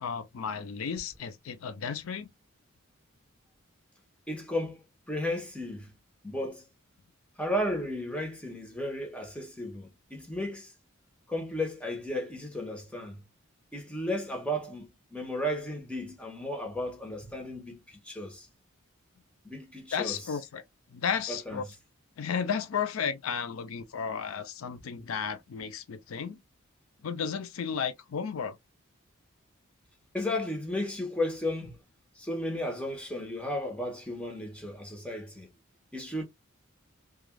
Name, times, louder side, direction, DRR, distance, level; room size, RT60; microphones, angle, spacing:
voice 1, 0.0-2.3 19.9-20.6 20.9-21.6 22.2-26.4 27.0-28.6, left 7 dB, 85° left, 0.5 m, -33 dB
voice 2, 4.3-5.9 6.2-6.6 7.4-10.7 11.3-13.2 13.7-18.5 19.4-20.2 21.3-21.6 30.1-31.8 32.2-35.5 35.9-36.2, left 1 dB, 5° left, 0.9 m, -34 dB
3.2 x 2.3 x 2.2 m
head